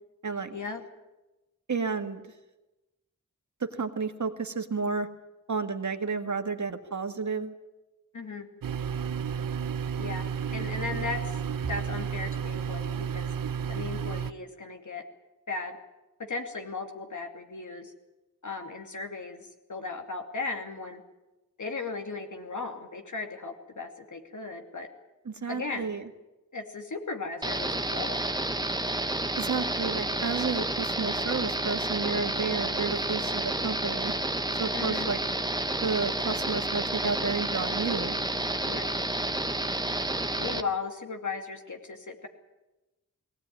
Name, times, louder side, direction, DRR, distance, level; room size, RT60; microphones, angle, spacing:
voice 1, 0.2-0.6 1.7-2.2 3.6-5.1 5.5-7.5 25.3-26.1 29.4-34.1 34.6-35.2 35.8-38.2, right 4 dB, 60° right, 7 dB, 1.8 m, -31 dB
voice 2, 8.1-8.5 10.0-11.4 11.7-13.3 13.7-15.0 15.5-15.8 16.2-17.9 18.4-21.0 21.6-24.9 25.5-26.0 26.5-28.2 34.7-35.1 38.6-38.9 40.4-42.3, left 4 dB, 65° left, 4 dB, 2.6 m, -36 dB
sound 1, 8.6-14.3, right 7 dB, 90° right, 0.7 m, -32 dB
sound 2, 27.4-40.6, right 1 dB, 10° right, 1.0 m, -30 dB
20.0 x 17.5 x 9.6 m, 1.0 s
wide cardioid pair, 60°, 32 cm